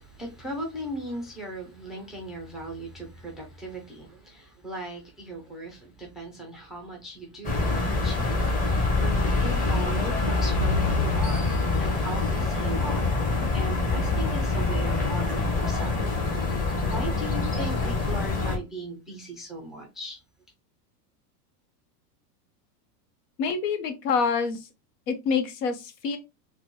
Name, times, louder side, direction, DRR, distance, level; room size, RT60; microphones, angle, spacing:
voice 1, 0.0-13.2 13.4-16.7 16.9-20.2, right 1 dB, ahead, 0.4 m, -38 dB
sound 1, 7.4-18.6, left 3 dB, 15° left, 0.9 m, -25 dB
voice 2, 23.4-24.6 25.1-26.2, left 5 dB, 75° left, 1.0 m, -26 dB
4.1 x 2.2 x 2.9 m
supercardioid pair, 135°, 48 cm